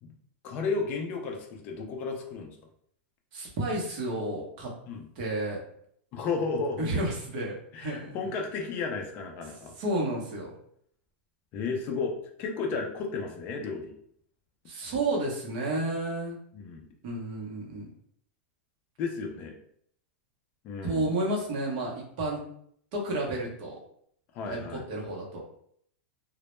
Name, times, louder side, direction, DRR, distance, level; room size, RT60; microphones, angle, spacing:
voice 1, 0.4-2.6 4.9-5.1 6.1-7.0 7.7-9.8 11.5-12.1 12.4-13.9 16.5-16.9 19.0-19.5 20.6-21.1 24.3-24.8, left 4 dB, 25° left, 2 dB, 0.4 m, -33 dB
voice 2, 3.3-4.7 5.2-5.6 6.8-8.2 9.8-10.6 14.7-16.4 17.0-17.9 20.8-22.4 22.9-23.7 24.5-24.6 24.9-25.4, right 1 dB, 40° right, -1 dB, 0.7 m, -31 dB
2.0 x 2.0 x 3.0 m, 0.66 s
supercardioid pair, 170°, 7 cm